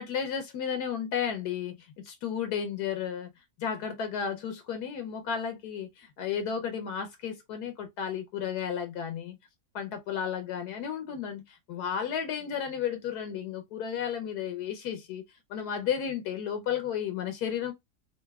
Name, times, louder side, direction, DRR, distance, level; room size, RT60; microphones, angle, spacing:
voice 1, 0.0-3.3 3.6-9.4 9.7-15.2 15.5-17.7, left 8 dB, 75° left, 1.1 m, -33 dB
4.0 x 2.5 x 2.2 m
omnidirectional pair, 1.7 m